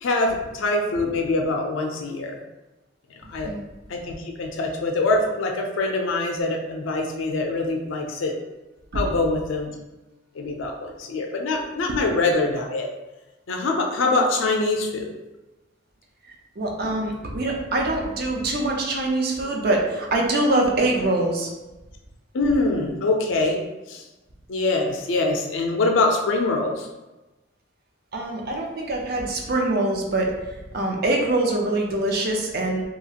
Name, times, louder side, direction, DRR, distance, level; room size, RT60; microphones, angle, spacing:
voice 1, 0.0-2.4 3.3-3.5 3.9-8.3 8.9-9.7 10.3-12.9 13.5-15.1 22.3-23.6 23.9-24.0 24.5-26.9, left 2 dB, 75° left, 2 dB, 0.4 m, -24 dB
voice 2, 3.2-3.6 8.9-9.0 11.9-12.0 16.6-21.5 28.1-30.3 30.7-32.8, right 2 dB, 50° right, 0 dB, 0.5 m, -24 dB
2.8 x 2.4 x 2.8 m, 1.1 s
head